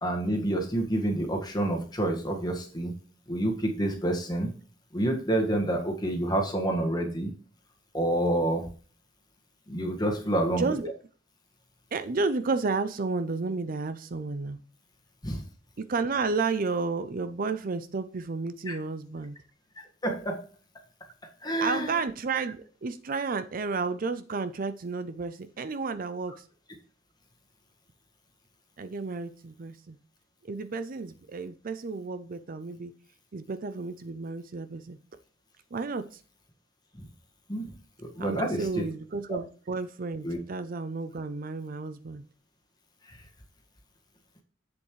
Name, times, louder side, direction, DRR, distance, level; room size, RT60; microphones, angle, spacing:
voice 1, 0.0-2.9 3.3-4.5 4.9-7.3 7.9-8.6 9.7-10.6 15.2-15.4 18.7-18.8 20.0-20.4 21.4-22.0 37.0-37.1 37.5-37.7 38.0-38.8 40.2-40.4 43.1-43.2, right 1 dB, 20° left, 3 dB, 1.7 m, -28 dB
voice 2, 10.5-10.9 11.9-14.6 15.8-19.3 21.6-26.4 28.8-30.0 30.4-32.9 33.3-35.0 35.7-36.1 38.2-42.2, right 4 dB, 45° right, 11 dB, 0.5 m, -32 dB
7.8 x 7.0 x 3.2 m, 0.39 s
head